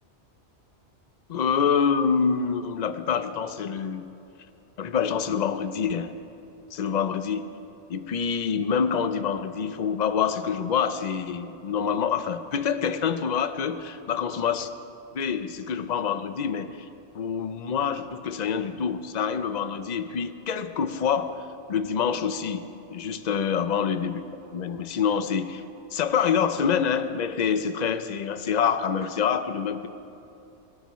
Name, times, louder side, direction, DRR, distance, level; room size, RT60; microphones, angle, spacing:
voice 1, 1.3-4.0 4.8-6.1 6.7-7.5 7.9-14.7 15.1-16.7 17.1-21.4 21.7-22.6 22.9-24.2 24.5-25.6 25.9-29.9, left 7 dB, 45° left, 10 dB, 0.6 m, -26 dB
19.0 x 17.5 x 3.1 m, 2.9 s
omnidirectional pair, 1.2 m